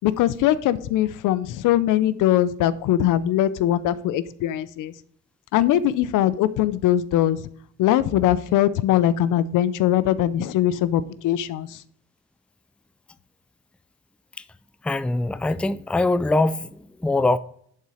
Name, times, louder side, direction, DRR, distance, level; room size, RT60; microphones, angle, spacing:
voice 1, 0.0-4.9 5.5-7.4 7.8-11.8, left 12 dB, 90° left, 0.6 m, -21 dB
voice 2, 14.8-17.4, left 2 dB, 5° left, 0.4 m, -23 dB
11.0 x 4.3 x 4.8 m
cardioid pair, 90°, 30 cm